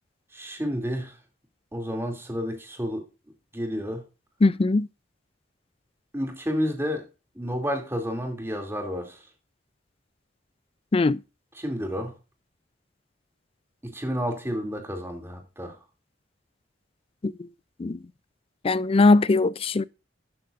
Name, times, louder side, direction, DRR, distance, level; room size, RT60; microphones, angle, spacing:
voice 1, 0.3-1.1 1.7-3.1 3.5-4.0 6.1-7.1 7.4-9.2 11.5-12.1 13.8-15.8, equal, 15° right, 2.7 m, -30 dB
voice 2, 4.4-4.9 10.9-11.2 17.2-17.3 17.8-18.0 18.6-19.8, left 3 dB, 30° left, 0.4 m, -20 dB
12.5 x 9.3 x 2.5 m
head